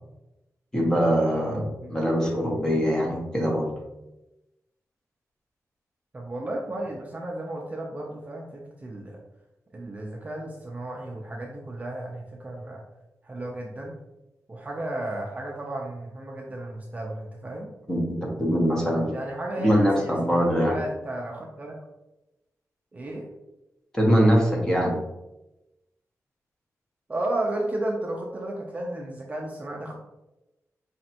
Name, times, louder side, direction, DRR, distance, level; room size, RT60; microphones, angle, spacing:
voice 1, 0.7-3.7 17.9-19.1 19.6-20.8 23.9-25.0, equal, 10° left, -1 dB, 0.9 m, -23 dB
voice 2, 6.1-9.2 9.7-12.8 13.2-13.9 14.5-17.7 19.1-21.8 22.9-23.3 27.1-30.0, right 1 dB, 25° right, -2 dB, 0.5 m, -33 dB
5.0 x 3.2 x 2.8 m, 0.96 s
wide cardioid pair, 170°, 6 cm